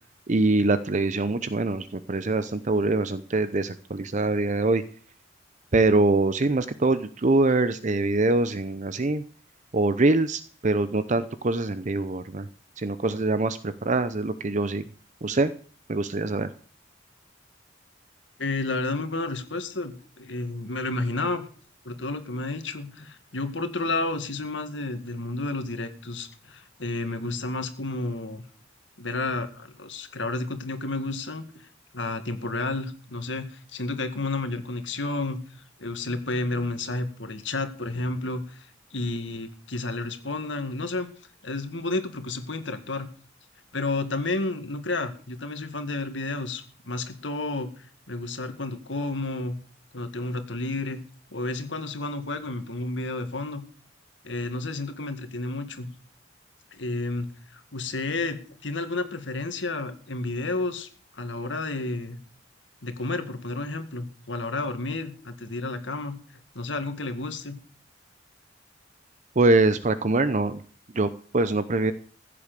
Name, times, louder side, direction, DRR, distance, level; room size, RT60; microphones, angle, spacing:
voice 1, 0.3-4.8 5.7-9.2 9.7-12.5 12.8-14.8 15.2-15.5 15.9-16.5 69.4-70.6 70.9-71.9, right 2 dB, 40° right, 13 dB, 0.7 m, -24 dB
voice 2, 18.4-21.5 21.8-28.4 29.0-31.4 31.9-35.4 35.8-41.1 41.4-43.1 43.7-47.7 48.1-49.6 49.9-51.0 51.3-53.6 54.2-55.9 56.7-62.2 62.8-66.2 66.5-67.6, left 2 dB, 75° left, 8 dB, 2.0 m, -31 dB
15.5 x 8.6 x 6.7 m, 0.42 s
head